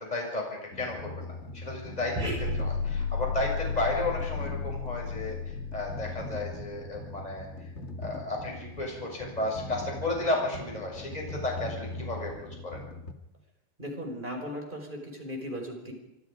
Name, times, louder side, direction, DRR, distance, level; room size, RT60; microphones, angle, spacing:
voice 1, 0.0-7.5 8.0-12.3 12.6-12.8, left 2 dB, 10° left, 0 dB, 6.8 m, -33 dB
sound 1, 0.7-13.1, left 2 dB, 90° left, 0.6 m, -41 dB
sound 2, 2.2-6.8, left 4 dB, 70° right, 10.0 m, -33 dB
voice 2, 13.8-15.9, equal, 10° right, 2 dB, 5.2 m, -37 dB
28.0 x 24.5 x 5.2 m, 0.87 s
omnidirectional pair, 4.6 m